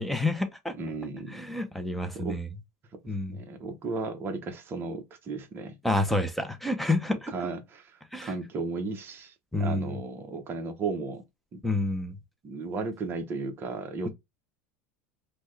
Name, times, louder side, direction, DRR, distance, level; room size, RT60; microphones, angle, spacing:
voice 1, 0.0-0.7 1.3-2.5 3.1-3.4 5.8-7.3 8.1-8.3 9.5-10.0 11.6-12.2, left 2 dB, ahead, 0.5 m, -29 dB
voice 2, 0.8-1.6 2.1-2.4 3.3-5.8 7.3-7.8 8.2-9.3 9.6-11.2 12.4-14.1, right 4 dB, 30° right, 0.8 m, -34 dB
3.3 x 2.2 x 3.1 m
supercardioid pair, 135°, 8 cm